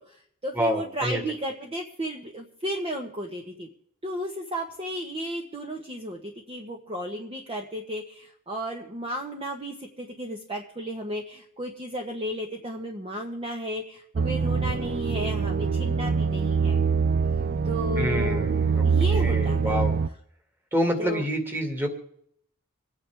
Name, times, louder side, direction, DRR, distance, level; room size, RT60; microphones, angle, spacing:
voice 1, 0.0-3.7 4.0-16.8 17.6-18.5 18.8-19.8 21.0-21.2, equal, 25° right, 1 dB, 1.2 m, -34 dB
voice 2, 0.5-1.2 18.0-18.8 19.1-19.9 20.7-21.9, equal, 10° right, 3 dB, 2.1 m, -27 dB
sound 1, 14.2-20.1, right 5 dB, 45° right, 0.4 m, -24 dB
26.5 x 9.5 x 3.5 m, 0.68 s
head